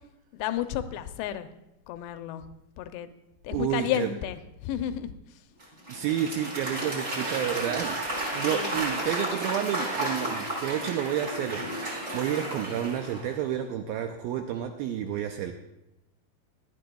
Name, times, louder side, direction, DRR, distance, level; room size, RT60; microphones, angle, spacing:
voice 1, 0.3-1.5 1.9-2.4 2.8-3.1 3.4-5.1 8.5-8.8, left 11 dB, 85° left, 10 dB, 2.7 m, -32 dB
voice 2, 3.5-4.1 5.9-8.0 8.3-15.5, right 10 dB, 90° right, 5 dB, 2.1 m, -30 dB
Applause / Crowd, 5.6-13.4, right 1 dB, 20° right, 3.2 m, -32 dB
18.0 x 12.5 x 2.3 m, 0.91 s
omnidirectional pair, 4.9 m